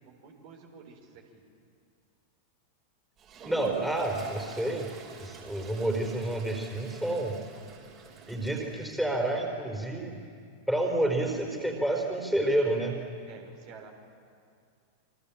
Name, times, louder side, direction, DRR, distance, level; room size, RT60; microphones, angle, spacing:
voice 1, 0.0-1.4 13.3-13.9, right 5 dB, 50° right, 2 dB, 4.6 m, -50 dB
Toilet flush, 3.2-9.0, right 5 dB, 30° right, 5.8 m, -46 dB
voice 2, 3.4-4.9 5.2-7.4 8.3-10.2 10.7-13.0, right 1 dB, ahead, 1 dB, 4.4 m, -29 dB
28.5 x 25.0 x 7.4 m, 2.3 s
figure-of-eight pair, 90°, 0 cm